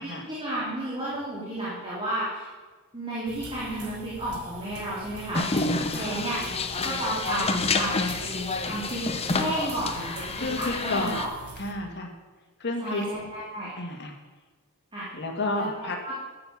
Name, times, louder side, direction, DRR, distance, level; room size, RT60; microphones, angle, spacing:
voice 1, 0.0-2.5 2.9-6.4 6.8-10.1 10.4-11.3 12.8-13.7 14.9-15.1 15.5-16.2, right 1 dB, 25° right, -9 dB, 3.4 m, -32 dB
sound 1, 3.3-11.7, right 4 dB, 75° right, 1.5 m, -44 dB
sound 2, 5.3-11.3, left 3 dB, 25° left, 0.8 m, -29 dB
voice 2, 5.7-6.1 9.8-10.1 10.4-11.2 11.6-12.1 12.6-13.1 13.8-14.2 15.1-16.0, left 2 dB, 50° left, 3 dB, 1.8 m, -31 dB
13.0 x 6.9 x 7.2 m, 1.3 s
head